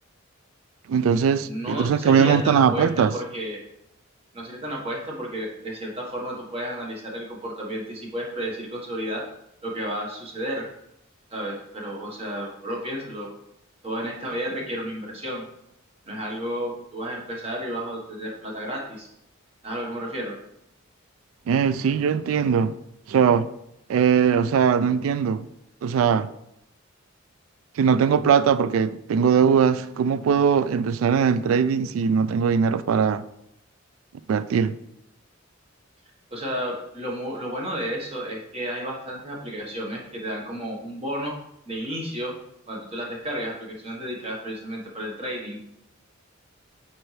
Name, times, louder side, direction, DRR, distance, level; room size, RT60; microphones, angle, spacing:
voice 1, 0.9-3.1 21.5-22.7 23.1-23.5 23.9-25.5 25.8-26.3 27.8-33.2 34.3-34.7, right 6 dB, 80° right, 0.3 m, -20 dB
voice 2, 1.5-3.6 4.3-9.3 9.6-10.7 11.3-13.3 13.8-15.4 16.1-19.1 19.6-20.4 36.3-41.4 41.6-42.4 42.7-45.6, equal, 30° right, 1.5 m, -32 dB
8.8 x 4.3 x 3.3 m
head